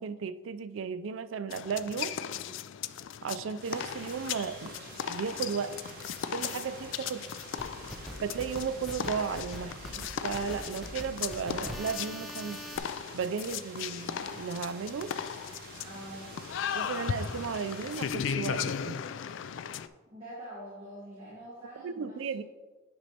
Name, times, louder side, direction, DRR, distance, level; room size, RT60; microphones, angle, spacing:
voice 1, 0.0-2.1 3.2-4.8 5.1-5.8 6.3-7.2 8.2-12.6 13.1-15.1 16.7-19.0 21.8-22.4, right 6 dB, 80° right, 12 dB, 0.4 m, -35 dB
sound 1, 1.5-19.9, left 8 dB, 70° left, 0.3 m, -37 dB
sound 2, 3.6-18.1, right 3 dB, 45° right, 1.1 m, -49 dB
sound 3, 7.6-12.8, equal, ahead, 0.6 m, -42 dB
voice 2, 15.8-16.3 20.1-22.4, right 1 dB, 30° right, -7 dB, 1.5 m, -45 dB
9.4 x 6.2 x 2.9 m, 1.3 s
head